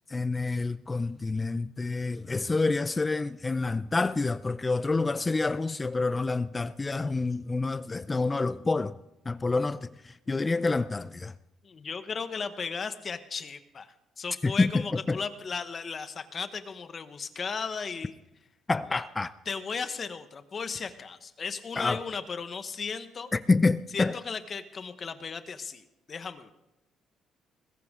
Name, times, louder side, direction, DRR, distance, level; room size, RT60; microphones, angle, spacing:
voice 1, 0.1-9.0 9.3-11.3 14.4-15.2 18.7-19.3 21.8-22.0 23.3-24.2, left 3 dB, 20° left, 0.4 m, -28 dB
voice 2, 11.6-18.1 18.9-19.0 19.5-23.3 23.9-26.5, left 5 dB, 35° left, 1.0 m, -36 dB
21.0 x 15.0 x 3.7 m
cardioid pair, 115°, 0 cm